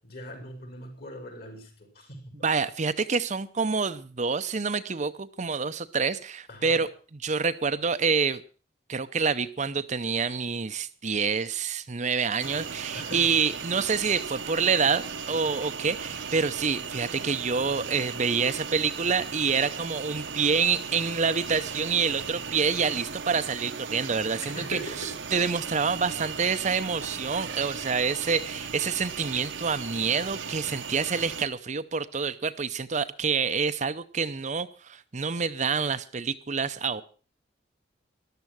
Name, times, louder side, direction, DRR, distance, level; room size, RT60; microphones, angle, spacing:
voice 1, 0.0-2.4 6.5-6.8 12.9-13.3 24.4-25.2, left 1 dB, 55° left, 3 dB, 5.5 m, -40 dB
voice 2, 2.4-6.9 7.2-8.4 8.9-24.8 25.3-37.0, right 5 dB, 40° right, 11 dB, 0.7 m, -27 dB
sound 1, 12.4-31.5, right 6 dB, 80° right, 1.1 m, -37 dB
14.0 x 12.0 x 6.1 m, 0.38 s
head